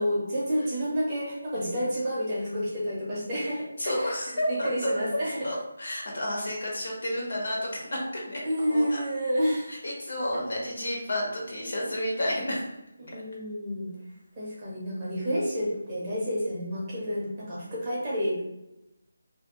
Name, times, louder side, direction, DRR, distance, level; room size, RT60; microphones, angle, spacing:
voice 1, 0.0-5.5 8.4-9.7 13.0-13.9 14.4-18.4, equal, 15° right, -8 dB, 0.6 m, -29 dB
voice 2, 3.8-4.9 5.4-8.4 8.7-9.0 9.7-12.6, left 1 dB, 55° left, -2 dB, 1.0 m, -31 dB
2.6 x 2.5 x 2.9 m, 0.91 s
figure-of-eight pair, 180°, 0 cm